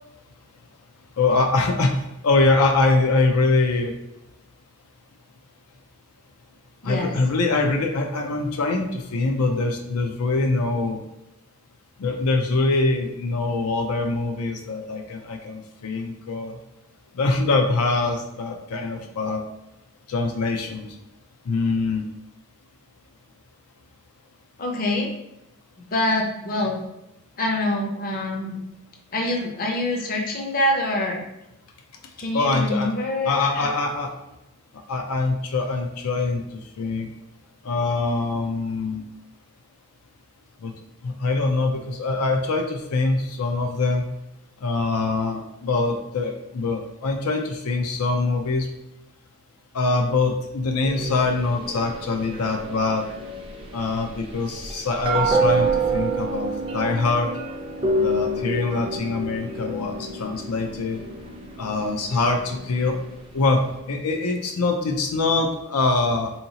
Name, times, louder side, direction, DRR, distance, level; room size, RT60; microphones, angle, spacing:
voice 1, 1.2-4.0 6.8-11.0 12.0-16.6 17.1-19.4 20.1-20.9 21.5-22.0 32.3-32.9 33.2-34.1 34.9-36.4 36.8-37.1 37.6-39.0 40.6-40.7 41.0-44.0 44.6-48.7 49.7-53.1 53.7-57.3 58.0-61.0 61.6-63.0 63.3-63.6 63.9-66.3, left 3 dB, 85° left, 4 dB, 0.5 m, -23 dB
voice 2, 6.8-7.2 12.5-12.6 24.6-25.1 25.8-26.8 27.4-28.6 29.1-31.2 32.2-33.7, left 1 dB, 40° left, 0 dB, 0.5 m, -25 dB
sound 1, 50.8-63.8, right 2 dB, 25° right, 0.4 m, -28 dB
3.7 x 2.9 x 2.8 m, 0.89 s
head